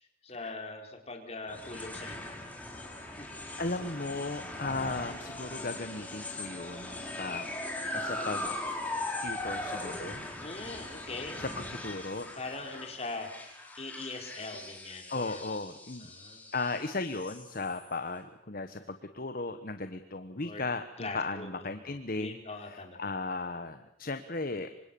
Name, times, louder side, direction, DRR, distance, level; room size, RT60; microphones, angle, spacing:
voice 1, 0.2-2.4 3.1-3.4 10.4-11.4 12.4-13.3 13.8-15.4 16.0-16.4 20.4-20.6 21.0-21.9 22.2-23.1, left 3 dB, 35° left, 3 dB, 4.6 m, -41 dB
sound 1, 1.5-17.9, left 2 dB, 10° left, 4.5 m, -40 dB
voice 2, 3.6-7.5 7.9-8.5 9.2-10.2 11.4-12.3 15.1-16.1 16.5-24.7, left 3 dB, 50° left, 9 dB, 1.3 m, -36 dB
27.0 x 25.0 x 7.1 m, 0.79 s
head